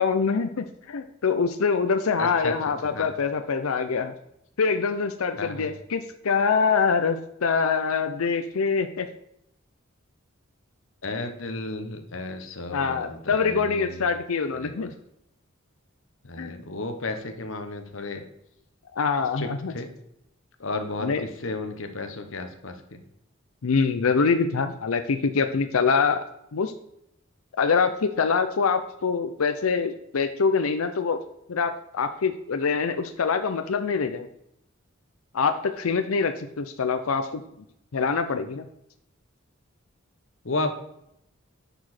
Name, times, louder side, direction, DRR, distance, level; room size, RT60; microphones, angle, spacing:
voice 1, 0.0-4.1 4.6-9.1 12.7-14.9 16.4-16.6 18.9-19.7 21.0-21.2 23.6-26.2 26.5-26.7 27.6-31.2 31.5-34.3 35.3-37.4 37.9-38.7, left 5 dB, 90° left, 8 dB, 0.6 m, -24 dB
voice 2, 2.2-2.5 2.8-3.1 5.4-5.7 11.0-14.2 14.5-14.9 16.2-18.2 19.4-19.5 19.7-19.9 20.6-23.0 40.4-40.8, left 2 dB, 65° left, 7 dB, 1.1 m, -33 dB
10.0 x 5.0 x 4.2 m, 0.77 s
head